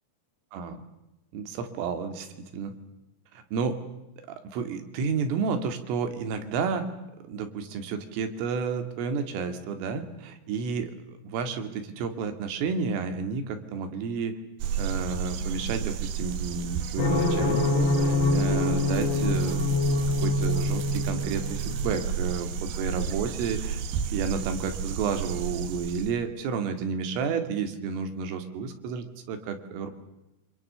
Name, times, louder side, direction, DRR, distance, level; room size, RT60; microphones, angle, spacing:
voice 1, 1.3-2.7 3.4-3.8 4.4-6.9 7.3-10.9 11.2-14.4 14.8-19.6 20.2-23.8 24.1-29.9, right 5 dB, 85° right, 7 dB, 4.8 m, -31 dB
sound 1, 14.6-26.1, right 7 dB, 65° right, 2.8 m, -32 dB
sound 2, 17.0-22.0, left 2 dB, 55° left, 5.3 m, -25 dB
28.0 x 26.0 x 6.8 m, 0.96 s
omnidirectional pair, 5.7 m